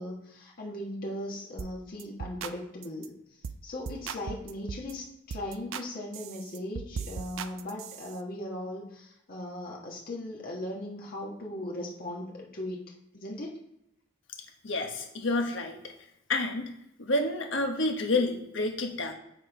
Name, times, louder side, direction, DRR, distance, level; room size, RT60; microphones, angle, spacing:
voice 1, 0.0-3.1 3.6-12.8 13.1-13.5, left 1 dB, 45° left, -2 dB, 1.4 m, -38 dB
sound 1, 1.6-1.7 2.0-2.6 2.8-3.1 3.4-3.6 3.9-4.9 5.3-5.9 6.1-8.2, right 6 dB, 75° right, 0.4 m, -38 dB
voice 2, 14.6-15.9 16.3-16.7 17.0-19.1, left 2 dB, 65° left, 3 dB, 1.2 m, -29 dB
7.3 x 4.4 x 4.9 m, 0.80 s
head